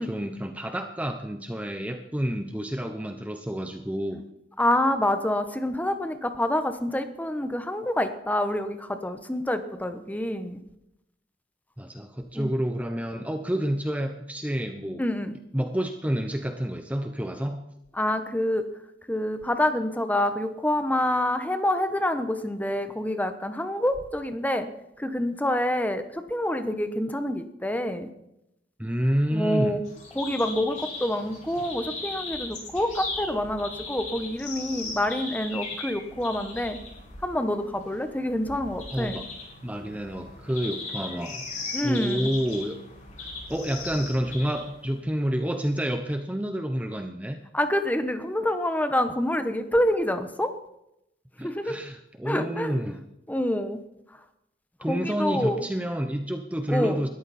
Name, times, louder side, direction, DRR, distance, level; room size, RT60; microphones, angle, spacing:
voice 1, 0.0-4.2 11.8-15.0 15.5-17.6 28.8-29.8 38.9-39.3 39.6-41.4 41.8-42.8 43.2-47.4 51.4-53.0 54.8-57.1, equal, 10° right, 6 dB, 0.8 m, -29 dB
voice 2, 4.6-10.6 12.3-12.5 15.0-15.3 17.9-18.6 19.1-24.7 25.0-28.1 29.3-29.8 30.1-36.8 37.2-39.2 41.7-42.3 47.5-50.5 51.4-51.8 52.2-53.0 53.3-53.8 54.9-55.7 56.7-57.0, left 1 dB, 10° left, 9 dB, 1.1 m, -27 dB
sound 1, 29.9-45.0, left 3 dB, 45° left, 5.5 m, -38 dB
20.5 x 13.5 x 4.3 m, 0.82 s
head